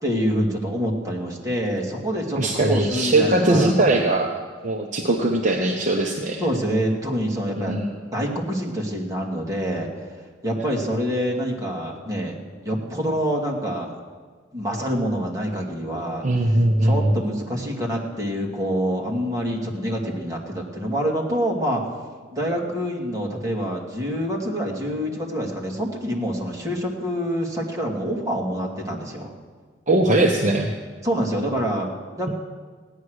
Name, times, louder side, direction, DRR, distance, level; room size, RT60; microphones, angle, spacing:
voice 1, 0.0-4.1 6.4-7.8 8.1-9.9 10.4-13.9 14.5-16.2 16.8-21.8 22.3-29.3 31.0-31.9 32.1-32.3, equal, 20° right, -2 dB, 2.5 m, -26 dB
voice 2, 2.4-4.3 4.6-6.4 7.6-7.9 16.2-17.2 29.9-30.7 32.3-32.4, right 1 dB, 45° right, 1 dB, 1.0 m, -20 dB
17.0 x 9.7 x 6.5 m, 1.5 s
head